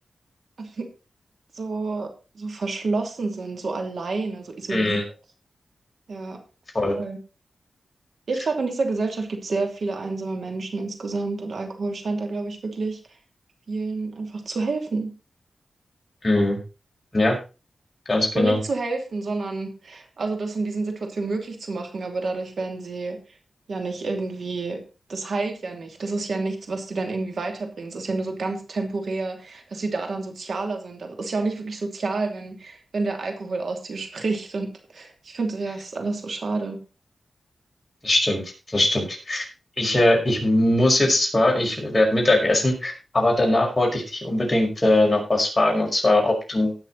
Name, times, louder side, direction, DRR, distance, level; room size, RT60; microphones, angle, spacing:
voice 1, 0.6-0.9 1.5-5.0 6.1-6.4 6.9-7.2 8.3-13.0 13.7-15.1 18.3-23.2 23.7-24.8 25.1-36.8, right 3 dB, 70° right, 5 dB, 2.9 m, -29 dB
voice 2, 4.7-5.0 6.7-6.9 16.2-16.6 17.1-17.4 18.1-18.6 38.0-39.5 39.8-46.8, left 1 dB, 25° left, -1 dB, 5.5 m, -21 dB
18.5 x 6.6 x 4.1 m, 0.31 s
wide cardioid pair, 75°, 0 cm